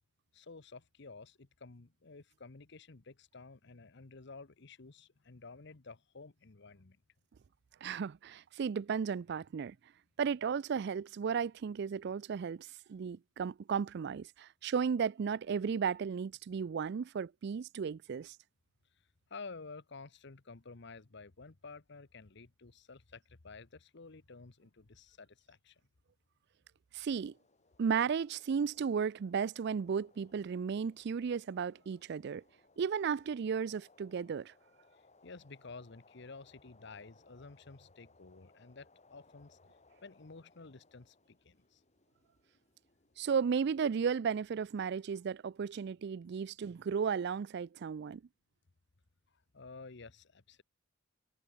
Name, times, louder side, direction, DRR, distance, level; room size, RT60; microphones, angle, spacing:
voice 1, 0.3-7.0 19.3-25.8 35.2-39.6 40.0-41.8 49.5-50.6, left 4 dB, 65° left, 1.1 m, -52 dB
voice 2, 7.8-9.8 10.2-18.4 26.9-27.3 27.8-32.4 32.8-34.5 43.2-48.2, right 6 dB, 60° right, 0.4 m, -34 dB
sound 1, 27.1-44.1, left 3 dB, 40° left, 6.1 m, -67 dB
head